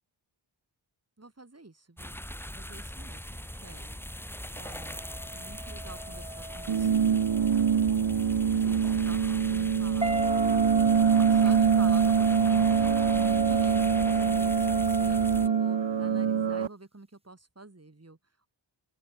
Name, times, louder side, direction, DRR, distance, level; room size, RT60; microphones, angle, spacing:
voice 1, 1.2-2.2 2.6-5.1 5.3-7.0 8.4-10.2 11.3-18.2, right 2 dB, 30° right, 7.1 m, -48 dB
sound 1, 2.0-15.5, equal, 5° left, 4.2 m, -41 dB
sound 2, 4.7-7.9 10.0-16.2, right 1 dB, 10° right, 4.8 m, -33 dB
sound 3, 6.7-16.7, right 7 dB, 65° right, 1.2 m, -24 dB
open air
wide cardioid pair, 85°, 48 cm